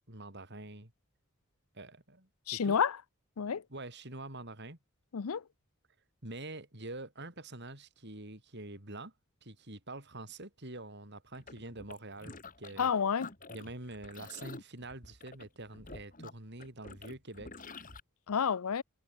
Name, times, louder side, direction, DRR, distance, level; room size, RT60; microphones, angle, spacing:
voice 1, 0.1-0.9 1.7-2.8 3.7-4.8 6.2-9.1 9.4-12.9 13.5-17.7, right 2 dB, 55° right, 5.0 m, -46 dB
voice 2, 2.5-3.0 3.4-3.6 5.1-5.4 12.8-13.3 18.3-18.8, left 7 dB, 85° left, 0.6 m, -29 dB
sound 1, 11.3-12.9 13.2-18.0, left 3 dB, 40° left, 3.7 m, -49 dB
head